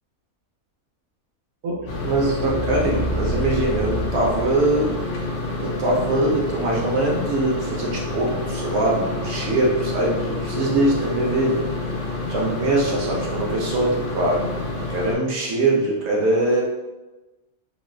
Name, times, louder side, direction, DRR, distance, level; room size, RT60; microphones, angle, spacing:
sound 1, 1.7-6.7, right 1 dB, 85° right, 1.0 m, -31 dB
sound 2, 1.9-15.2, left 2 dB, 65° left, 0.8 m, -28 dB
voice 1, 2.0-5.0 5.5-11.7 12.3-14.4 14.8-16.6, right 2 dB, 65° right, -2 dB, 0.7 m, -22 dB
3.1 x 2.3 x 2.3 m, 1.1 s
omnidirectional pair, 1.5 m